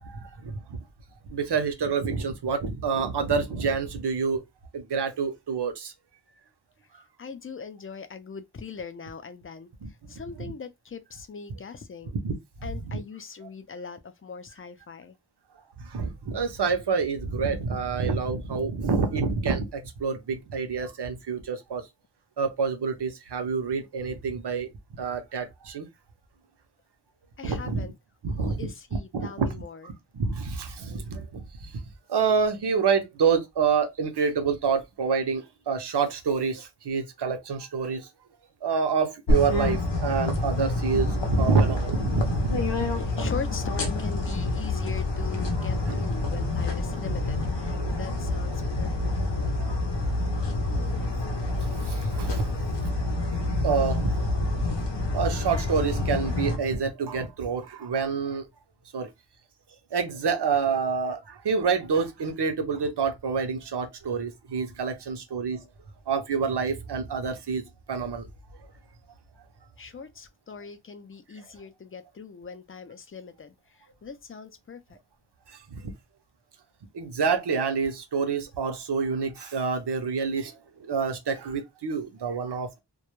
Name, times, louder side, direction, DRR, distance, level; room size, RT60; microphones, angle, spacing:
voice 1, 0.0-0.8 1.3-4.4 4.7-5.9 6.9-7.0 9.8-9.9 12.2-12.4 15.8-21.8 22.4-24.7 25.0-25.9 27.4-27.9 28.2-28.7 29.1-29.5 29.8-31.8 32.1-38.1 38.6-42.6 45.9-46.0 49.6-49.8 50.9-52.5 52.8-52.9 53.3-54.8 55.1-58.5 58.9-59.1 59.9-65.6 66.1-68.3 75.5-75.9 76.9-82.8, right 5 dB, 75° right, 0.7 m, -28 dB
voice 2, 7.2-9.7 10.1-12.1 12.6-15.2 27.4-27.9 28.3-29.9 42.9-49.1 69.8-75.0, left 5 dB, 30° left, 0.4 m, -41 dB
sound 1, 39.3-56.6, left 2 dB, 90° left, 0.7 m, -27 dB
2.2 x 2.1 x 2.9 m
wide cardioid pair, 60°, 41 cm